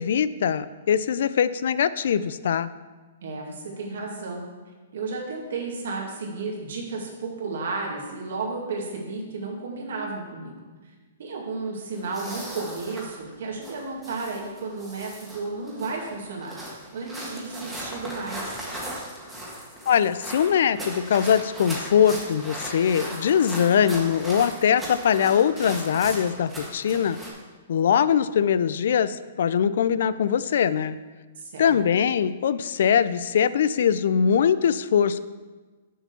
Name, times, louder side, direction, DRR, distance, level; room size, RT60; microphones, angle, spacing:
voice 1, 0.0-2.7 19.9-27.2 27.7-31.0 31.6-35.2, left 8 dB, 65° left, 15 dB, 0.3 m, -22 dB
voice 2, 3.2-4.4 4.9-10.5 11.2-18.6 31.4-31.8, right 3 dB, 70° right, -1 dB, 2.1 m, -33 dB
sound 1, 11.9-27.3, right 1 dB, 5° right, 1.6 m, -38 dB
6.9 x 5.0 x 6.8 m, 1.4 s
hypercardioid pair, 155°, 0 cm